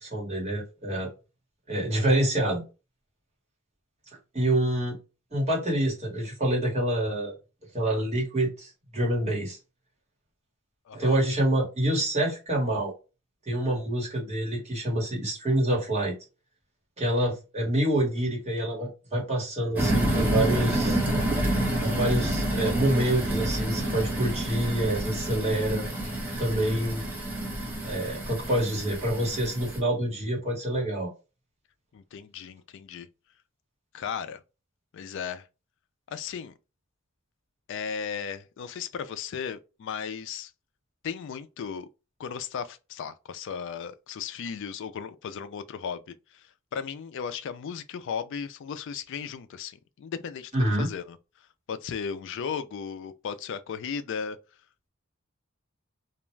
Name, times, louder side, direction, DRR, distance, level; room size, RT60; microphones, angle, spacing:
voice 1, 0.0-1.1 1.7-2.6 4.3-5.0 5.3-7.3 7.7-9.6 10.9-12.9 13.5-16.1 17.0-21.0 21.8-25.8 26.4-27.0 27.8-31.1 50.5-50.9, right 1 dB, 35° right, 1.3 m, -27 dB
voice 2, 10.9-11.2 31.9-33.1 33.9-34.4 34.9-35.4 36.1-36.5 37.7-40.5 41.0-41.9 42.2-46.0 46.7-50.5 50.8-51.2 51.7-54.4, left 7 dB, 65° left, 0.3 m, -35 dB
sound 1, 19.8-29.8, right 1 dB, 10° right, 0.9 m, -28 dB
2.3 x 2.2 x 3.1 m
head